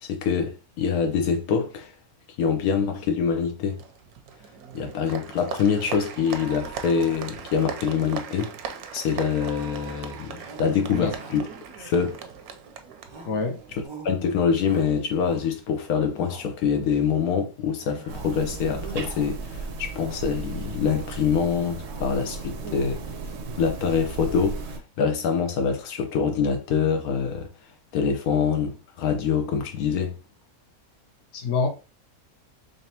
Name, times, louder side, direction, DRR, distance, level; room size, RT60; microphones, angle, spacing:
voice 1, 0.0-1.9 2.4-3.8 4.7-8.5 8.9-11.5 11.8-12.2 14.0-23.0 23.6-27.5 27.9-30.1, left 6 dB, 85° left, 1.2 m, -25 dB
Applause, 3.8-13.9, right 7 dB, 85° right, 1.1 m, -39 dB
Shout, 9.7-10.0 10.4-10.8 11.1-11.5 11.9-12.6 13.1-13.4 13.8-14.2 14.6-15.7 16.1-16.5 16.9-17.4 17.8-18.4 18.7-19.4 19.9-20.3 20.7-21.2 21.6-22.1 22.4-23.1, right 4 dB, 45° right, 0.3 m, -45 dB
voice 2, 13.2-13.6 31.3-31.7, left 4 dB, 60° left, 1.0 m, -26 dB
sound 1, 18.1-24.8, right 4 dB, 65° right, 0.7 m, -35 dB
3.9 x 3.3 x 2.7 m
omnidirectional pair, 1.5 m